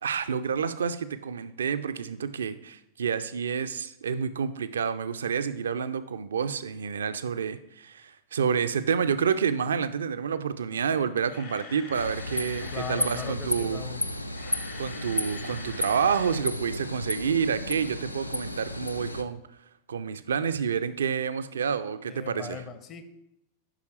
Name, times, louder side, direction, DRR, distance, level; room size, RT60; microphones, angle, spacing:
voice 1, 0.0-13.8 14.8-19.4 19.9-22.6, right 7 dB, 65° right, 13 dB, 0.4 m, -29 dB
Camera, 11.3-13.4 14.2-16.4 16.7-16.9 17.3-17.4, left 4 dB, 60° left, 1.2 m, -45 dB
sound 1, 11.9-19.2, left 1 dB, 85° left, 0.3 m, -33 dB
voice 2, 12.7-14.1 16.4-16.5 22.1-23.0, left 7 dB, 30° left, 9 dB, 0.7 m, -38 dB
7.6 x 5.7 x 3.1 m, 0.83 s
figure-of-eight pair, 90°, 0 cm